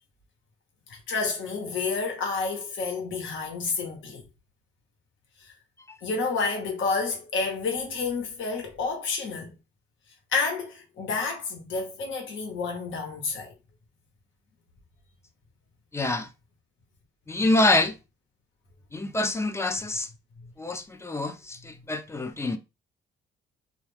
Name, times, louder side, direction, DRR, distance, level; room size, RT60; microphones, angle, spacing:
voice 1, 0.9-4.2 5.4-5.5 6.0-9.5 10.3-13.6 20.4-20.5, left 4 dB, 75° left, 1.0 m, -30 dB
voice 2, 15.9-16.3 17.3-18.0 18.9-20.1 20.6-22.6, left 2 dB, 15° left, 0.4 m, -26 dB
2.3 x 2.2 x 3.2 m
cardioid pair, 90°, 20 cm